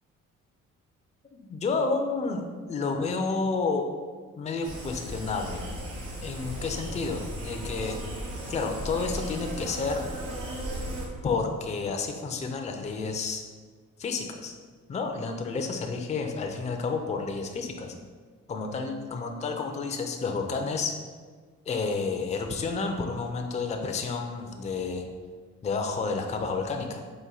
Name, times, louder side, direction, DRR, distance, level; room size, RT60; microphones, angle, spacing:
voice 1, 1.3-3.8 4.4-5.6 6.2-8.0 8.5-10.0 11.2-13.4 14.0-14.5 14.9-17.9 18.5-20.9 21.7-25.0 25.6-27.0, left 4 dB, 25° left, 4 dB, 0.4 m, -30 dB
sound 1, 4.6-11.1, equal, 85° right, 0.9 m, -36 dB
4.2 x 2.5 x 3.8 m, 1.5 s
cardioid pair, 90°, 30 cm